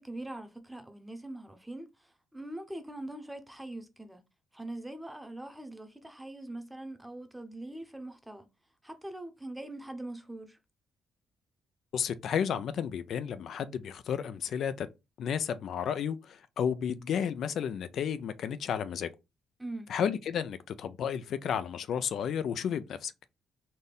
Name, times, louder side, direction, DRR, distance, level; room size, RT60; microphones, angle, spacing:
voice 1, 0.0-4.2 4.5-8.5 8.8-10.6 19.6-19.9, right 1 dB, 10° right, 0.8 m, -42 dB
voice 2, 11.9-14.9 15.2-19.1 19.9-23.1, left 8 dB, 65° left, 0.4 m, -32 dB
4.2 x 2.6 x 3.5 m
cardioid pair, 90°, 0 cm